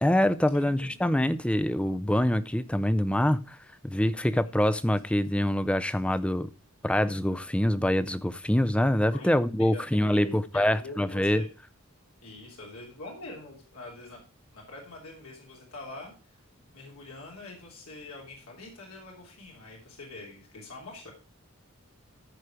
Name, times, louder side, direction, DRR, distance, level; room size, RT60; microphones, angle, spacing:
voice 1, 0.0-3.6 3.9-6.5 6.8-11.4, left 1 dB, 5° left, 0.4 m, -25 dB
voice 2, 0.5-0.9 9.1-9.3 9.7-11.5 12.2-14.2 14.5-16.4 16.7-21.1, left 2 dB, 80° left, 3.0 m, -44 dB
14.0 x 4.8 x 4.9 m
head